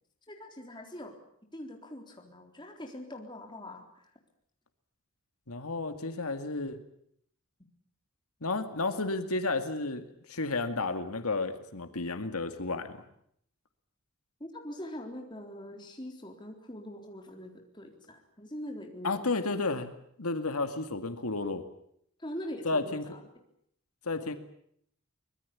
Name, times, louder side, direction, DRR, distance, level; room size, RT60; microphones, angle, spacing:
voice 1, 0.3-1.2 1.5-3.8 14.4-19.2 22.2-23.2, left 1 dB, 20° left, 3 dB, 3.8 m, -43 dB
voice 2, 5.5-6.8 8.4-13.0 19.0-19.9 20.2-21.6 22.6-23.1 24.0-24.3, left 3 dB, 90° left, 8 dB, 2.1 m, -32 dB
24.5 x 20.5 x 8.5 m, 0.68 s
head